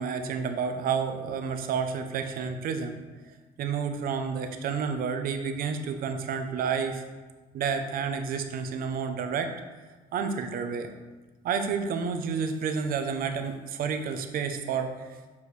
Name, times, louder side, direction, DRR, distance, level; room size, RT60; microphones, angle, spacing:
voice 1, 0.0-2.9 3.6-7.0 7.5-9.5 10.1-10.9 11.4-15.2, right 6 dB, 60° right, 7 dB, 0.7 m, -30 dB
7.0 x 4.7 x 3.3 m, 1.3 s
cardioid pair, 110°, 17 cm